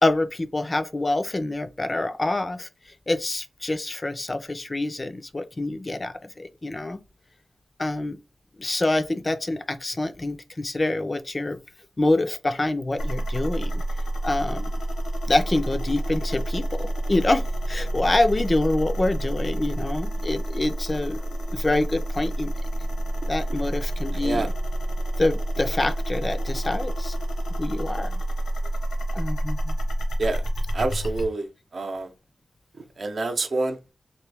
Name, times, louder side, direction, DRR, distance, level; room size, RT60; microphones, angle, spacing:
voice 1, 0.0-2.7 3.1-7.0 7.8-8.2 8.6-11.6 12.0-13.8 14.2-14.7 15.3-21.2 21.5-22.5 23.3-24.5 25.2-27.2 27.6-28.2 29.1-29.8, left 2 dB, 30° left, 0.4 m, -26 dB
sound 1, 13.0-31.3, right 1 dB, 90° left, 0.9 m, -28 dB
voice 2, 24.1-24.5 30.2-30.4 30.7-32.1 33.0-33.8, right 3 dB, 60° right, 0.7 m, -27 dB
3.0 x 2.6 x 3.3 m
wide cardioid pair, 75°, 0 cm